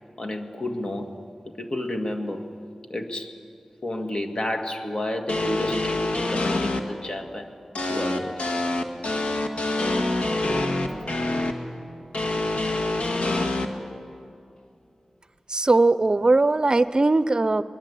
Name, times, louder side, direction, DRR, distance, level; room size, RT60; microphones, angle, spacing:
voice 1, 0.2-1.1 1.4-2.5 2.9-3.4 3.8-7.6 7.9-8.5, left 1 dB, 45° left, 5 dB, 2.2 m, -31 dB
sound 1, 5.3-6.8 7.8-11.5 12.1-13.7, left 2 dB, 85° left, 1.7 m, -25 dB
voice 2, 15.5-17.6, right 2 dB, 40° right, 14 dB, 0.6 m, -19 dB
23.0 x 22.0 x 8.5 m, 2.5 s
wide cardioid pair, 55°, 2 cm